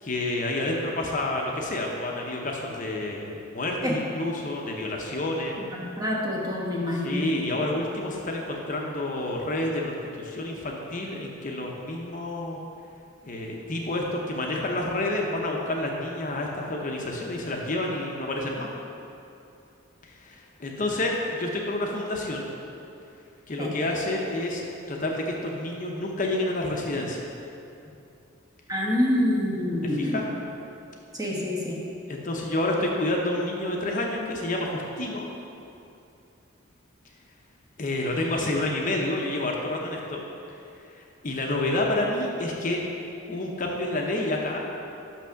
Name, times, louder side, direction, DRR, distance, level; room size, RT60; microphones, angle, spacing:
voice 1, 0.0-5.6 6.9-12.6 13.2-18.7 20.0-22.5 23.5-27.3 29.8-30.2 31.4-31.5 32.1-35.3 37.8-40.2 41.0-42.8 43.3-44.6, left 1 dB, 40° left, 0 dB, 0.7 m, -29 dB
voice 2, 5.6-7.2 23.6-23.7 28.7-30.3 31.1-31.8, left 1 dB, 20° right, -3 dB, 1.1 m, -27 dB
6.1 x 5.9 x 5.7 m, 2.7 s
head